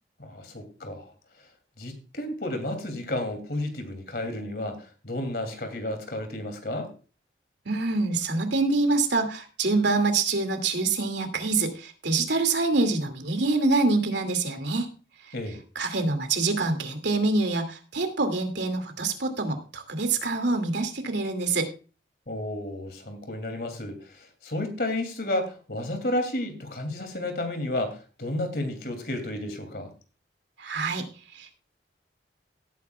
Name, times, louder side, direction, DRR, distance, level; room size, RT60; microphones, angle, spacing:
voice 1, 0.2-1.1 1.8-6.9 15.3-15.6 22.3-29.9, left 1 dB, 60° left, 6 dB, 2.7 m, -32 dB
voice 2, 7.7-14.9 15.8-21.7 30.6-31.0 31.4-31.5, right 3 dB, 80° right, 6 dB, 2.4 m, -25 dB
17.5 x 9.2 x 2.3 m, 0.35 s
head